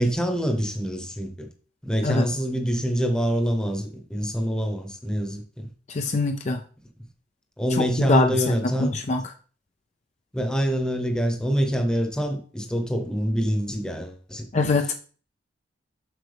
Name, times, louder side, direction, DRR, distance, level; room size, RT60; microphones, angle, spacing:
voice 1, 0.0-1.5 1.8-5.7 7.6-8.9 10.3-14.7, equal, 5° left, 1.0 m, -26 dB
voice 2, 5.9-6.6 7.8-8.5 8.8-9.2 14.5-14.9, left 3 dB, 40° left, 0.5 m, -23 dB
7.8 x 6.0 x 3.4 m
head